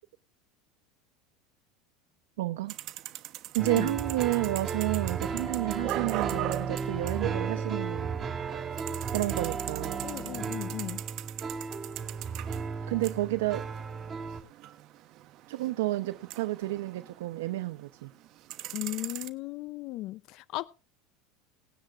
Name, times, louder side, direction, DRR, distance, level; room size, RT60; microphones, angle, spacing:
voice 1, 2.4-2.7 3.5-8.1 9.1-10.1 12.9-13.7 15.5-18.1, right 18 dB, 85° right, 0.8 m, -30 dB
sound 1, 2.7-8.1 8.4-17.8 18.1-19.3, right 15 dB, 50° right, 1.1 m, -40 dB
sound 2, 3.6-14.4, right 5 dB, 25° right, 2.7 m, -34 dB
voice 2, 10.0-11.0 18.7-20.7, left 17 dB, 50° left, 0.6 m, -36 dB
19.0 x 10.0 x 2.5 m
supercardioid pair, 135°, 0 cm